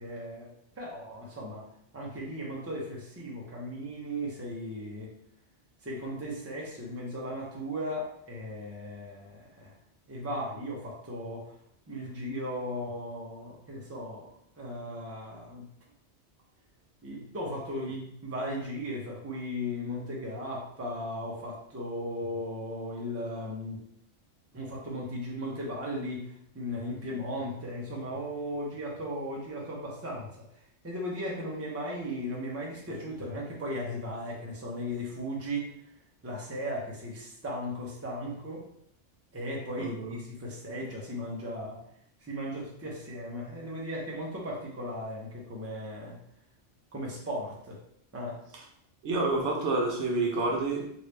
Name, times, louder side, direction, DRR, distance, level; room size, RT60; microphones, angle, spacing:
voice 1, 0.0-1.6 1.9-5.1 5.8-9.7 10.1-11.5 11.9-15.6 17.0-23.8 24.5-30.3 30.8-35.7 36.2-38.6 39.3-41.8 42.2-46.2 46.9-47.8 48.1-48.4, equal, 15° right, -3 dB, 0.6 m, -36 dB
voice 2, 39.8-40.2 49.0-50.9, right 2 dB, 70° right, 0 dB, 0.9 m, -28 dB
3.3 x 2.7 x 3.2 m, 0.70 s
omnidirectional pair, 1.2 m